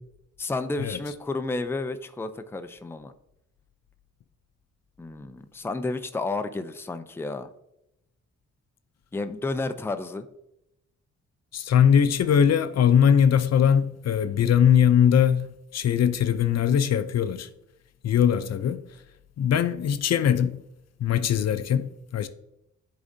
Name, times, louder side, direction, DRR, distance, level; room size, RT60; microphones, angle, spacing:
voice 1, 0.4-3.1 5.0-7.5 9.1-10.2, left 3 dB, 10° left, 0.4 m, -31 dB
voice 2, 11.5-17.5 18.0-18.8 19.4-20.6 21.0-22.3, left 8 dB, 60° left, 0.5 m, -21 dB
9.5 x 3.9 x 2.6 m
cardioid pair, 70°, 30 cm